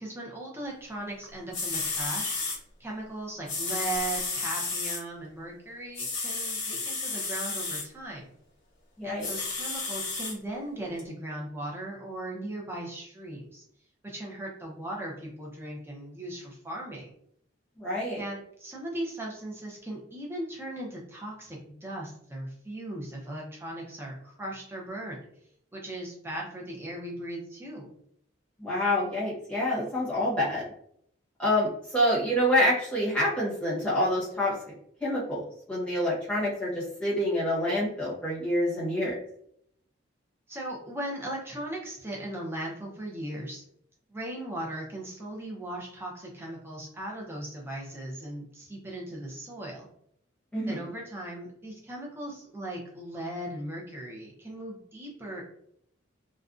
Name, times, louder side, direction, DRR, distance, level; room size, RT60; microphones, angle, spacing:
voice 1, 0.0-2.4 2.8-8.3 9.0-13.6 14.0-17.1 18.2-25.2 25.7-27.9 40.5-43.6 44.1-49.9 50.7-55.4, right 1 dB, 10° right, -2 dB, 0.5 m, -38 dB
sound 1, 1.2-1.3 1.5-2.6 3.5-5.0 5.9-7.8 9.2-10.3 11.0-11.1, left 3 dB, 90° left, 1.0 m, -32 dB
voice 2, 17.8-18.2 28.6-30.6 31.4-34.5 35.0-35.4 35.7-39.1 50.5-50.8, left 1 dB, 5° left, -8 dB, 0.9 m, -27 dB
2.4 x 2.1 x 2.4 m, 0.69 s
head